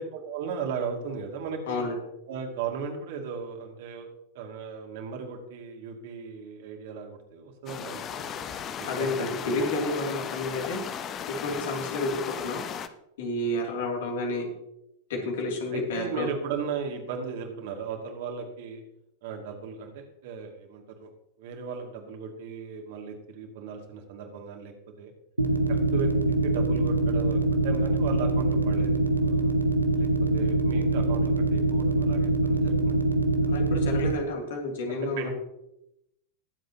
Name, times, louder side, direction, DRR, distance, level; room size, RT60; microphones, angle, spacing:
voice 1, 0.0-1.8 2.3-4.1 4.3-9.5 11.4-11.8 13.4-13.5 15.1-15.3 15.7-18.8 19.2-21.1 21.4-25.1 25.7-26.1 26.4-29.5 30.0-30.1 30.3-33.0 34.9-35.3, right 6 dB, 50° right, 2 dB, 2.4 m, -36 dB
voice 2, 1.7-2.0 8.9-10.8 11.3-12.6 13.2-14.5 15.1-16.3 33.5-35.3, left 2 dB, 55° left, 1 dB, 2.8 m, -30 dB
sound 1, 7.7-12.9, left 8 dB, 30° left, 0.8 m, -36 dB
sound 2, 25.4-34.1, right 2 dB, 85° right, 1.0 m, -23 dB
22.0 x 7.8 x 2.9 m, 0.84 s
figure-of-eight pair, 90°, 0 cm